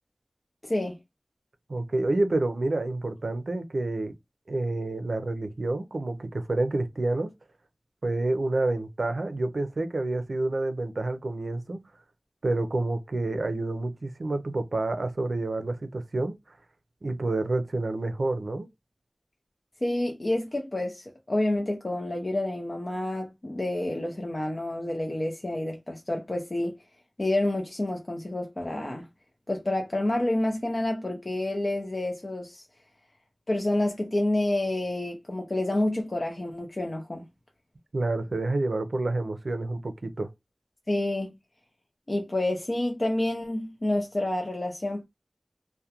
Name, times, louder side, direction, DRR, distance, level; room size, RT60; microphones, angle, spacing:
voice 1, 0.6-1.0 19.8-26.8 27.2-29.1 29.5-32.7 33.5-37.2 40.9-41.4 42.1-45.0, left 1 dB, 45° left, 0.5 m, -28 dB
voice 2, 1.7-4.1 4.5-7.3 8.0-11.8 12.4-16.4 17.0-18.7 37.9-40.3, right 2 dB, 85° right, 0.4 m, -28 dB
2.3 x 2.1 x 2.8 m
wide cardioid pair, 50°, 0 cm